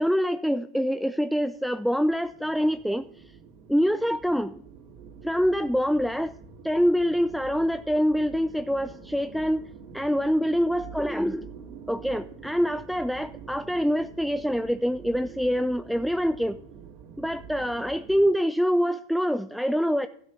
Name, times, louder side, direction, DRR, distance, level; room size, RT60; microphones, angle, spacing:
voice 1, 0.0-3.1 3.7-4.6 5.2-6.3 6.6-9.7 9.9-11.5 11.9-16.6 17.2-20.1, equal, ahead, 11 dB, 0.4 m, -25 dB
sound 1, 1.1-18.3, right 6 dB, 50° right, 2.3 m, -46 dB
13.0 x 7.9 x 6.1 m, 0.67 s
hypercardioid pair, 120°, 0 cm